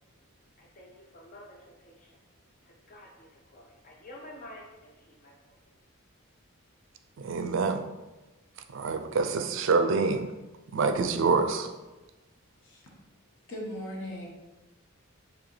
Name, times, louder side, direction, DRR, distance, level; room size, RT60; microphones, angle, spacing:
voice 1, 0.6-2.2 2.6-5.6, left 1 dB, 40° left, -1 dB, 0.5 m, -50 dB
voice 2, 7.2-7.8 8.7-10.3 10.7-11.7, right 4 dB, 60° right, 7 dB, 0.4 m, -26 dB
voice 3, 13.5-14.3, equal, 60° left, -2 dB, 1.1 m, -38 dB
4.8 x 3.1 x 3.2 m, 1.1 s
head